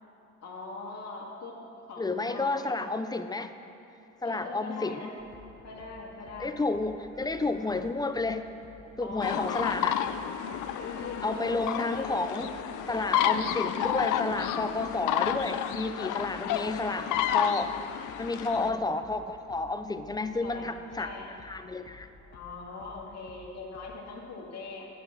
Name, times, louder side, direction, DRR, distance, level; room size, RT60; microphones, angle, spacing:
voice 1, 0.4-1.6 1.9-2.7 4.2-5.2 5.6-6.6 9.0-9.7 10.8-11.5 11.8-12.4 16.3-17.1 18.4-18.8 20.4-21.3 22.3-24.9, left 3 dB, 60° left, -2 dB, 2.1 m, -42 dB
voice 2, 2.0-3.5 4.2-5.2 6.4-8.5 9.0-10.0 11.2-12.5 12.9-17.7 18.2-21.1 21.4-22.1, left 3 dB, 15° left, 9 dB, 0.5 m, -31 dB
sound 1, 5.2-24.0, left 4 dB, 45° left, 1.2 m, -54 dB
sound 2, 7.1-8.4 9.3-15.5 15.9-17.9, right 2 dB, 35° right, 1.0 m, -51 dB
sound 3, 9.2-18.7, left 10 dB, 80° left, 0.5 m, -31 dB
10.5 x 6.1 x 7.3 m, 2.8 s
cardioid pair, 90°, 30 cm